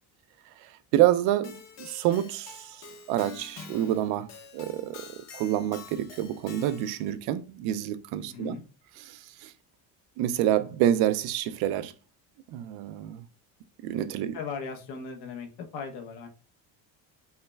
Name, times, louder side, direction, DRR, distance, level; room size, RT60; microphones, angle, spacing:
voice 1, 0.5-8.6 9.0-9.5 10.2-11.9 12.5-13.2 13.8-14.4, right 12 dB, 80° right, 0.5 m, -28 dB
Keyboard (musical), 1.4-7.1, left 5 dB, 45° left, 0.6 m, -47 dB
voice 2, 8.2-8.6 14.3-16.3, left 5 dB, 75° left, 0.9 m, -38 dB
5.5 x 2.1 x 2.2 m
cardioid pair, 135°, 38 cm